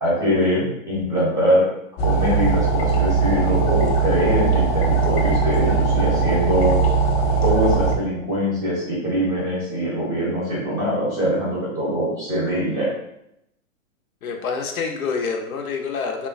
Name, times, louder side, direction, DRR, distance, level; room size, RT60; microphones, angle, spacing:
voice 1, 0.0-1.7 2.0-6.8 7.4-12.9, equal, 10° right, -6 dB, 0.6 m, -22 dB
sound 1, 2.0-8.0, right 4 dB, 45° left, 0.5 m, -20 dB
voice 2, 14.2-16.3, left 5 dB, 90° left, 4 dB, 0.6 m, -27 dB
3.0 x 2.1 x 2.4 m, 0.81 s
hypercardioid pair, 145°, 42 cm